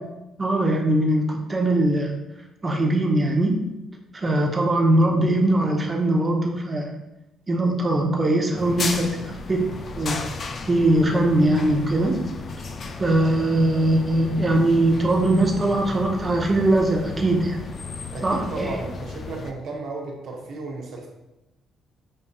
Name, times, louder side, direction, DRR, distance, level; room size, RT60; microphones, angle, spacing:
voice 1, 0.4-2.1 2.6-3.6 4.1-6.9 7.5-10.2 10.7-12.3 13.0-17.6 18.2-18.8, right 1 dB, 30° right, 0 dB, 0.7 m, -21 dB
sound 1, 8.6-19.5, left 3 dB, 50° left, 0.3 m, -34 dB
voice 2, 18.1-21.1, right 3 dB, 70° right, -1 dB, 0.7 m, -34 dB
5.4 x 2.5 x 2.3 m, 0.93 s
supercardioid pair, 60°, 0 cm